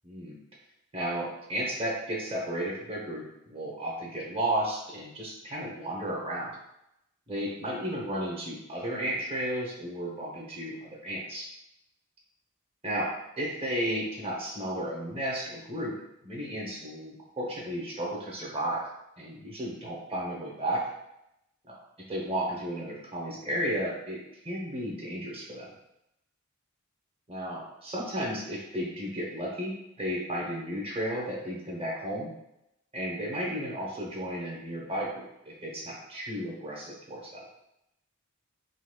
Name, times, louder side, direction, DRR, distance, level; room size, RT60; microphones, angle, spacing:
voice 1, 0.0-0.4 0.9-6.6 7.3-11.5 12.8-15.9 16.2-18.8 19.2-20.8 21.7-21.8 22.1-24.2 24.4-25.7 27.3-32.3 32.9-37.4, right 1 dB, 30° right, -3 dB, 0.8 m, -33 dB
3.9 x 2.8 x 2.2 m, 0.84 s
head